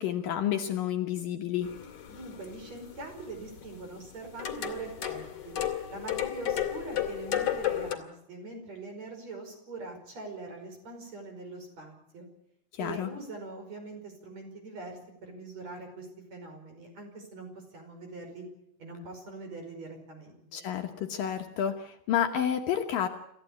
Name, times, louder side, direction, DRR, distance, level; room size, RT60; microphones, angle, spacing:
voice 1, 0.0-1.7 12.7-13.1 20.5-23.1, left 9 dB, 65° left, 5 dB, 2.6 m, -30 dB
sound 1, 1.6-7.9, left 11 dB, 45° left, 2.6 m, -33 dB
voice 2, 2.1-5.5 5.9-12.3 12.8-17.5 17.7-18.4 18.8-20.6, right 3 dB, 40° right, 4 dB, 6.3 m, -43 dB
27.0 x 15.0 x 8.6 m, 0.77 s
omnidirectional pair, 4.7 m